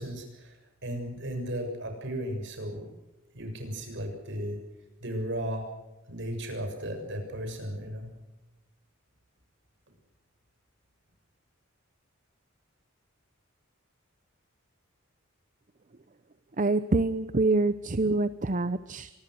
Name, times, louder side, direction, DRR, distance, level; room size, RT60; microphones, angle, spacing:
voice 1, 0.0-3.0 3.3-4.6 5.0-5.8 6.1-8.1, equal, 60° right, 6 dB, 6.8 m, -35 dB
voice 2, 16.6-19.1, right 2 dB, 35° right, 13 dB, 0.7 m, -26 dB
25.5 x 21.5 x 6.3 m, 1.0 s
head